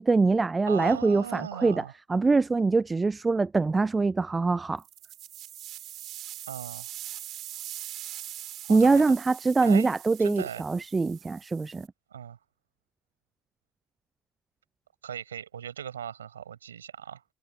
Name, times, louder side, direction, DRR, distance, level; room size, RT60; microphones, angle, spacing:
voice 1, 0.0-1.8 2.1-4.8 8.7-11.9, right 3 dB, 20° right, 0.4 m, -23 dB
voice 2, 0.7-1.9 6.5-6.9 8.6-9.0 9.6-9.9 10.2-10.6 12.1-12.4 15.0-17.2, right 9 dB, 80° right, 5.8 m, -38 dB
sound 1, 4.8-11.9, right 13 dB, 55° right, 5.7 m, -42 dB
figure-of-eight pair, 55°, 0 cm